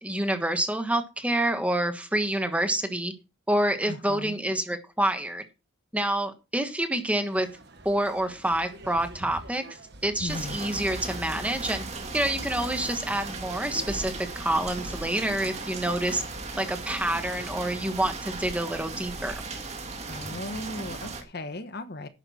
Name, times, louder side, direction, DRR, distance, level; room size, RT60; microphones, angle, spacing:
voice 1, 0.0-3.1 3.5-5.4 5.9-7.5 7.8-9.6 10.0-11.8 12.1-16.2 16.6-19.3, right 1 dB, 5° right, 7 dB, 1.4 m, -27 dB
voice 2, 3.9-4.4 10.2-10.6 20.1-22.1, left 2 dB, 50° left, 10 dB, 1.2 m, -36 dB
sound 1, 7.3-16.7, right 2 dB, 50° right, 1.6 m, -47 dB
sound 2, 10.3-21.2, right 3 dB, 30° right, 2.3 m, -37 dB
11.5 x 9.1 x 4.3 m, 0.29 s
head